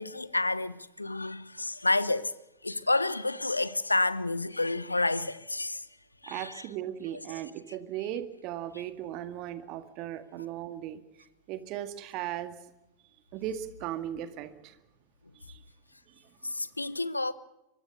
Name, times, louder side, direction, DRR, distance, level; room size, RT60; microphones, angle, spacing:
voice 1, 0.0-2.3 2.6-5.9 6.2-6.6 16.4-17.3, left 2 dB, 85° left, 1.0 m, -29 dB
voice 2, 6.3-11.0 11.5-12.6 13.3-14.8 15.3-15.6 16.1-16.3, right 11 dB, 40° right, 2.0 m, -37 dB
24.5 x 20.5 x 6.7 m
figure-of-eight pair, 90°, 0 cm